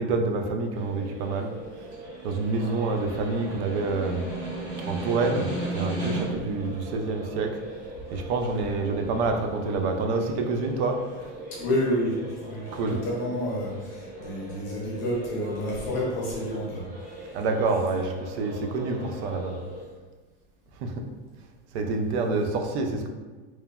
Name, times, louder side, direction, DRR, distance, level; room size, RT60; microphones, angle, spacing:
voice 1, 0.0-1.5 2.2-4.3 4.9-7.5 8.1-11.0 12.7-13.0 17.3-19.6 20.8-20.9 21.7-23.1, right 3 dB, 70° right, 4 dB, 0.5 m, -27 dB
sound 1, 0.7-19.8, right 1 dB, 25° right, 0.6 m, -41 dB
Snare drum, 1.6-6.5, right 1 dB, 45° right, 1.2 m, -34 dB
voice 2, 11.6-12.1 12.5-16.8, left 1 dB, 40° left, -4 dB, 0.5 m, -29 dB
3.1 x 2.1 x 2.2 m, 1.3 s
supercardioid pair, 175°, 35 cm